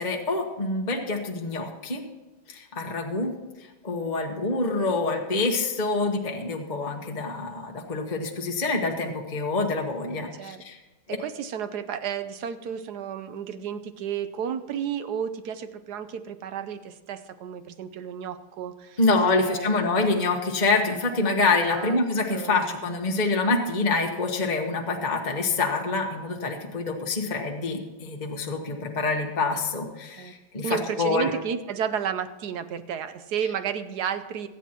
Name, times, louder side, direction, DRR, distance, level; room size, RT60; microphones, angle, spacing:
voice 1, 0.0-2.0 2.5-3.3 3.8-10.8 19.0-31.3, left 3 dB, 25° left, 1 dB, 1.1 m, -26 dB
voice 2, 10.3-10.6 11.1-19.8 21.7-22.0 22.3-22.6 30.2-30.3 30.6-34.5, right 8 dB, 65° right, 11 dB, 1.1 m, -32 dB
23.0 x 9.3 x 3.0 m, 1.1 s
omnidirectional pair, 2.1 m